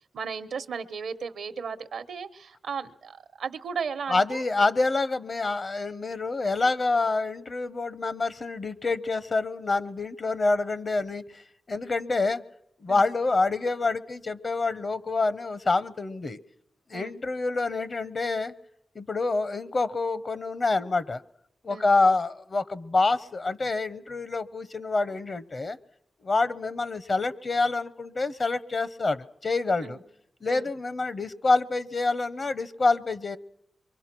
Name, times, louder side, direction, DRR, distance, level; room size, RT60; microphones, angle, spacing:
voice 1, 0.1-4.4 12.9-13.1 16.9-17.1 21.7-21.9 29.8-30.0 30.5-30.7, right 6 dB, 90° right, 11 dB, 0.9 m, -35 dB
voice 2, 4.1-12.4 12.8-16.4 16.9-18.5 18.9-21.2 21.6-25.8 26.2-30.0 30.4-33.4, left 3 dB, 50° left, 16 dB, 0.9 m, -27 dB
26.5 x 23.5 x 6.0 m, 0.81 s
cardioid pair, 65°, 0 cm